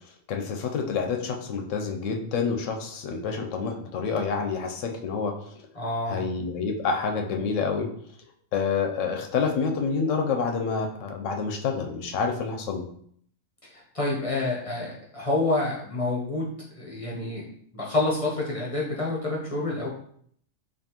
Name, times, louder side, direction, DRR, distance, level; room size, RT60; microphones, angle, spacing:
voice 1, 0.3-5.3 6.1-7.9 8.5-12.8, left 5 dB, 70° left, 3 dB, 0.9 m, -28 dB
voice 2, 5.8-6.3 13.7-17.4 17.7-19.9, left 2 dB, 35° left, -4 dB, 0.6 m, -28 dB
4.3 x 2.9 x 2.8 m, 0.64 s
omnidirectional pair, 1.4 m